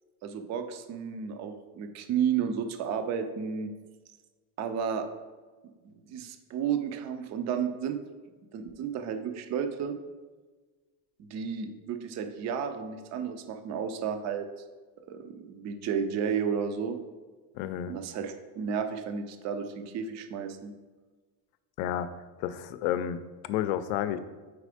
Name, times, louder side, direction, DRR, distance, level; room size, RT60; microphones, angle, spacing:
voice 1, 0.2-3.7 4.6-5.1 5.8-8.0 8.5-10.0 11.2-14.5 15.1-17.0 17.9-20.7, right 7 dB, 35° right, 8 dB, 0.4 m, -32 dB
voice 2, 17.5-18.0 21.8-22.1 22.4-24.2, left 10 dB, 85° left, 12 dB, 0.6 m, -31 dB
4.8 x 4.1 x 4.8 m, 1.3 s
cardioid pair, 150°, 48 cm